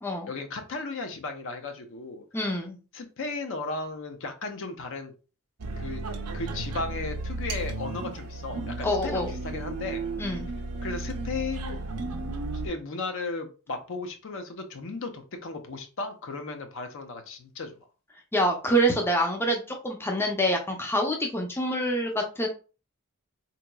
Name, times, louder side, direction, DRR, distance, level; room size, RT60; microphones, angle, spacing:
voice 1, 0.3-2.2 2.9-5.1 5.8-6.0 6.3-10.0 10.8-11.8 12.6-17.8, left 3 dB, 60° left, 6 dB, 0.6 m, -35 dB
voice 2, 2.3-2.8 8.8-9.3 10.2-10.5 18.3-22.5, equal, 10° left, 2 dB, 0.5 m, -26 dB
sound 1, 5.6-12.7, right 2 dB, 90° right, 0.5 m, -34 dB
3.7 x 2.9 x 2.2 m, 0.34 s
head